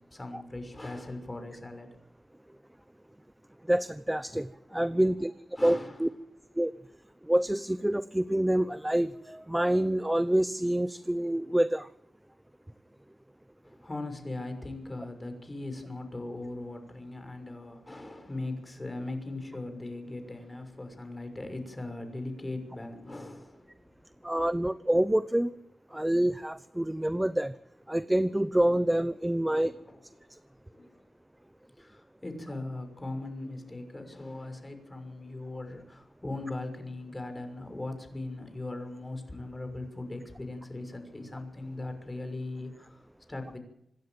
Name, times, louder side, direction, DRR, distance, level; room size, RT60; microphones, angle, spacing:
voice 1, 0.1-1.9 4.7-5.0 5.6-6.0 13.6-23.9 29.4-30.0 30.7-31.1 31.8-43.6, left 2 dB, 20° left, 7 dB, 6.2 m, -39 dB
voice 2, 3.7-4.5 4.7-5.3 5.6-6.1 6.6-6.7 7.3-11.9 24.2-25.5 25.9-27.5 27.9-29.7, right 1 dB, 10° right, 13 dB, 0.9 m, -27 dB
26.5 x 11.5 x 9.1 m, 0.77 s
cardioid pair, 70°, 0 cm